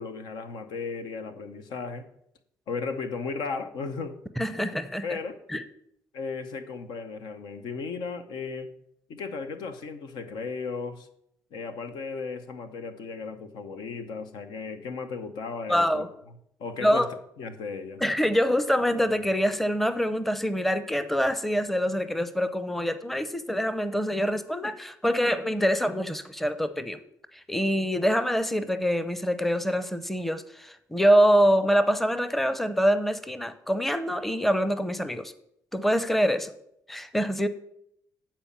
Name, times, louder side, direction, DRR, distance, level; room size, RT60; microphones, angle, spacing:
voice 1, 0.0-2.1 2.7-4.2 5.0-5.4 6.1-8.7 9.1-11.1 11.5-16.1 16.6-17.1 17.4-18.0, left 4 dB, 75° left, 9 dB, 0.9 m, -35 dB
voice 2, 4.4-5.2 5.5-5.6 15.7-16.1 16.8-17.1 18.0-27.0 27.5-35.3 35.7-36.5 36.9-37.5, equal, 5° left, 12 dB, 0.7 m, -25 dB
8.8 x 4.4 x 7.3 m, 0.74 s
supercardioid pair, 65°, 8 cm